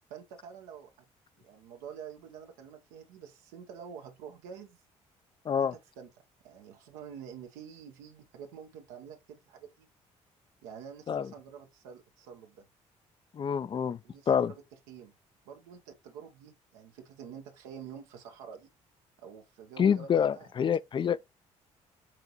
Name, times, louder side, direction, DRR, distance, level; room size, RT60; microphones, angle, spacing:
voice 1, 0.1-1.1 1.4-4.8 5.6-6.1 6.4-9.9 10.6-12.7 14.0-14.6 14.9-15.1 15.5-18.7 19.2-20.5 21.0-21.1, right 7 dB, 90° right, 0.7 m, -47 dB
voice 2, 13.3-14.0 14.3-14.5 19.8-21.3, left 7 dB, 35° left, 0.3 m, -27 dB
5.8 x 2.6 x 2.9 m
supercardioid pair, 65°, 14 cm